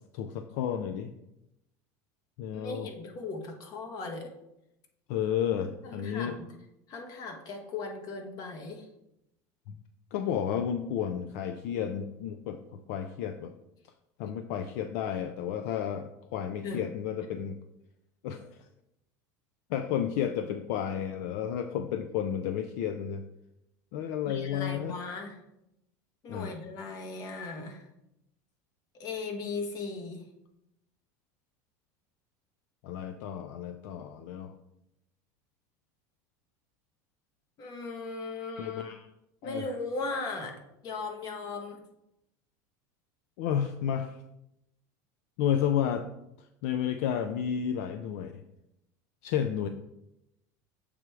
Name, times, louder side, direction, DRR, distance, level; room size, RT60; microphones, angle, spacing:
voice 1, 0.1-1.1 2.4-2.9 5.1-6.4 9.7-9.8 10.1-13.5 14.2-17.6 18.2-18.7 19.7-23.2 23.9-25.0 26.3-26.5 32.8-34.5 38.6-39.0 39.4-39.6 43.4-44.2 45.4-46.1 46.6-48.4 49.2-49.7, left 9 dB, 70° left, 8 dB, 0.4 m, -32 dB
voice 2, 2.5-4.3 5.8-6.5 6.9-8.9 16.6-16.8 24.2-25.4 26.2-27.9 28.9-30.2 37.6-38.9 39.4-41.8, left 3 dB, 45° left, 3 dB, 1.3 m, -37 dB
7.1 x 3.4 x 4.7 m, 0.86 s
supercardioid pair, 130°, 9 cm